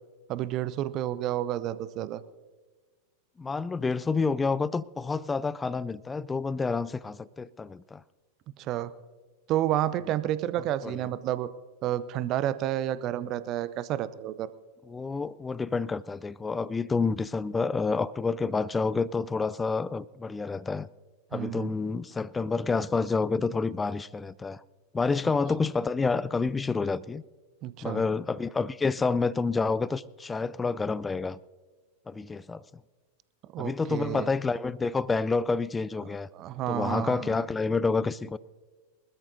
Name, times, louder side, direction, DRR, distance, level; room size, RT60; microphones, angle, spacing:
voice 1, 0.3-2.2 8.6-8.9 9.5-11.5 11.8-14.5 21.3-21.7 27.6-28.0 33.5-34.3 36.3-37.4, right 12 dB, 35° right, 0.6 m, -30 dB
voice 2, 3.4-8.0 10.8-10.9 14.9-20.9 21.3-24.6 24.9-27.2 27.8-31.4 32.1-32.6 33.6-36.3 36.7-38.4, left 4 dB, 15° left, 0.4 m, -28 dB
24.0 x 13.0 x 2.7 m
figure-of-eight pair, 90°, 0 cm